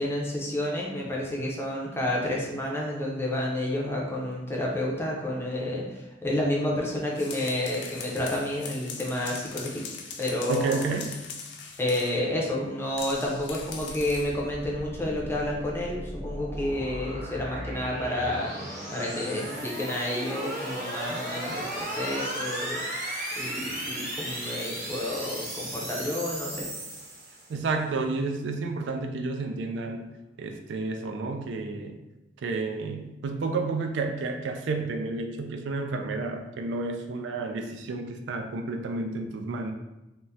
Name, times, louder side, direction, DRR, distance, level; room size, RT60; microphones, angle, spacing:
voice 1, 0.0-9.8 10.2-10.9 11.8-18.5 18.9-22.8 23.4-26.7, left 1 dB, 15° left, -3 dB, 0.5 m, -30 dB
sound 1, 7.0-12.2 13.0-14.4, left 5 dB, 65° left, 0.4 m, -41 dB
voice 2, 10.5-11.1 27.5-30.1 30.4-32.0 32.4-39.7, right 3 dB, 75° right, 4 dB, 0.3 m, -31 dB
sound 2, 13.7-27.7, right 1 dB, 40° right, 1.2 m, -36 dB
3.4 x 2.0 x 2.7 m, 0.97 s
head